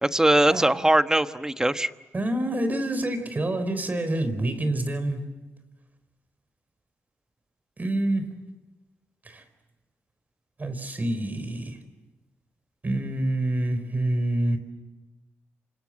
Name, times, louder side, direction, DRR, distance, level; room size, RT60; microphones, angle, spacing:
voice 1, 0.0-1.9, right 1 dB, 10° right, 1.1 m, -21 dB
voice 2, 2.1-5.3 7.8-8.3 9.2-9.4 10.6-11.8 12.8-14.6, right 1 dB, 30° right, 4.3 m, -27 dB
28.5 x 26.0 x 7.7 m
cardioid pair, 80°, 5 cm